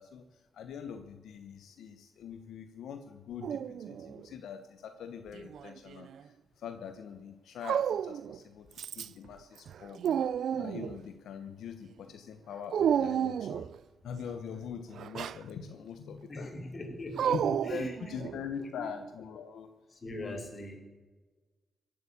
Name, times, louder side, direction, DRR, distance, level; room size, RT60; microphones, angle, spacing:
voice 1, 0.0-13.7 14.0-16.5 17.3-19.7 20.2-20.4, left 7 dB, 85° left, 7 dB, 1.0 m, -43 dB
Dog, 3.4-4.3 5.3-6.2 7.6-8.4 8.8-9.3 9.7-11.0 12.7-13.8 15.0-15.4 17.2-18.5, right 9 dB, 80° right, 0.4 m, -31 dB
voice 2, 16.3-17.4 17.6-18.0 18.6-18.9 19.9-20.8, left 1 dB, 40° left, 2 dB, 4.2 m, -41 dB
17.0 x 8.5 x 8.5 m, 1.3 s
cardioid pair, 80°, 0 cm